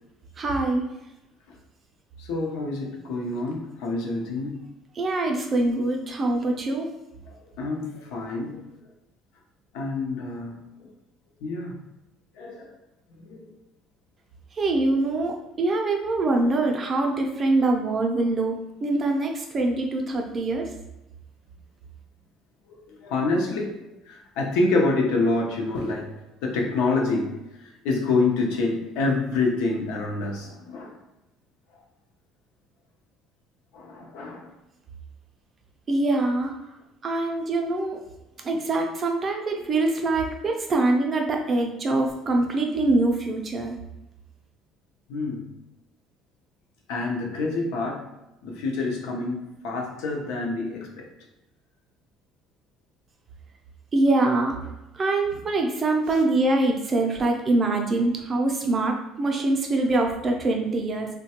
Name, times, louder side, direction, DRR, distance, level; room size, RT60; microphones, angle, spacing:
voice 1, 0.4-0.9 5.0-6.9 14.6-20.7 35.9-36.5 37.0-38.0 38.4-43.8 53.9-54.6 54.9-61.1, right 2 dB, 25° right, 2 dB, 0.4 m, -24 dB
voice 2, 2.2-4.6 7.3-8.7 9.7-10.6 11.4-11.8 12.4-12.7 13.2-13.5 22.7-31.0 33.7-34.5 45.1-45.5 46.9-48.1 48.4-51.1, left 3 dB, 85° left, 1 dB, 0.6 m, -27 dB
3.1 x 2.1 x 2.8 m, 0.94 s
cardioid pair, 150°, 0 cm